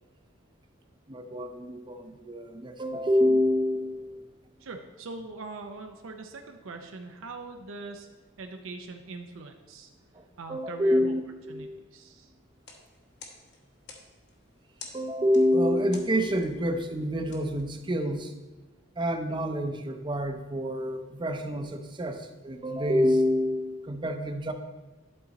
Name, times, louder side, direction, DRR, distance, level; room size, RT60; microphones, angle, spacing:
voice 1, 1.1-4.3 10.1-10.2 10.5-11.8 14.9-18.3 19.0-24.5, equal, 25° right, 6 dB, 0.5 m, -27 dB
voice 2, 4.6-8.1 8.4-9.9 10.4-11.1 11.5-12.3, right 3 dB, 85° right, 4 dB, 0.6 m, -42 dB
sound 1, 12.5-18.3, left 4 dB, 60° left, 1.1 m, -51 dB
11.0 x 4.0 x 4.1 m, 1.2 s
head